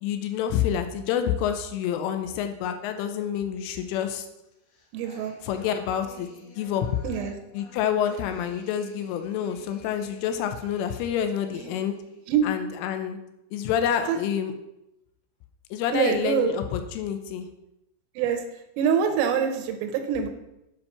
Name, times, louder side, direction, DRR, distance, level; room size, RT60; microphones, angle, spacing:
voice 1, 0.0-4.3 5.4-6.9 7.5-11.9 12.4-13.2 13.5-14.5 15.7-17.5, left 9 dB, 85° left, 7 dB, 3.0 m, -28 dB
sound 1, 4.4-12.3, left 3 dB, 65° left, 2.4 m, -51 dB
voice 2, 4.9-5.3 7.0-7.3 11.6-11.7 12.3-12.4 14.1-14.2 15.9-16.5 18.2-18.4 18.8-20.3, right 8 dB, 85° right, 6 dB, 3.5 m, -25 dB
8.5 x 5.3 x 5.7 m, 0.89 s
omnidirectional pair, 5.9 m